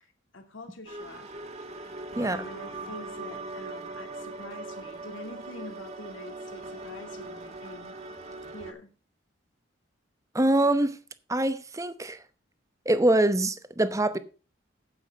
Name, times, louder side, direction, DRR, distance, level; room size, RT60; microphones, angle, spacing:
voice 1, 0.0-1.3 2.2-8.0 8.5-8.9, left 2 dB, 85° left, 2.4 m, -45 dB
sound 1, 0.9-8.7, right 2 dB, 35° right, 1.8 m, -40 dB
voice 2, 10.3-10.9 11.3-12.2 12.9-14.2, right 1 dB, 15° right, 0.8 m, -24 dB
9.3 x 8.6 x 5.2 m
head